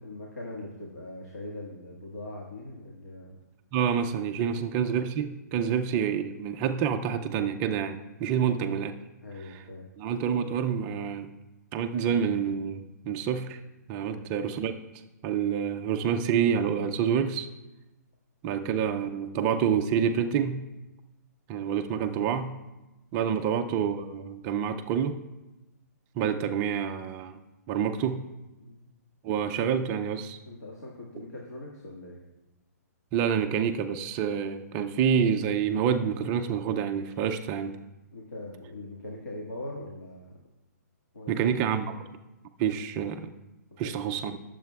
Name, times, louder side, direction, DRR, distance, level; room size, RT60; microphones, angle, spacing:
voice 1, 0.0-3.4 4.2-4.6 8.0-8.6 9.2-9.9 14.1-14.3 18.5-18.6 23.3-23.5 28.6-28.9 30.5-32.2 38.1-40.3 41.1-42.0 43.8-44.0 44.2-44.3, left 2 dB, 70° left, -3 dB, 1.8 m, -42 dB
voice 2, 3.7-8.9 10.0-11.3 11.7-13.6 13.9-14.7 15.2-17.5 18.4-20.6 21.5-22.5 23.1-25.2 26.2-27.4 27.7-28.2 29.2-30.4 33.1-37.8 41.3-41.9 42.6-43.3 43.8-44.4, right 7 dB, 15° right, 7 dB, 0.3 m, -27 dB
17.0 x 7.4 x 2.3 m, 1.0 s
hypercardioid pair, 170°, 9 cm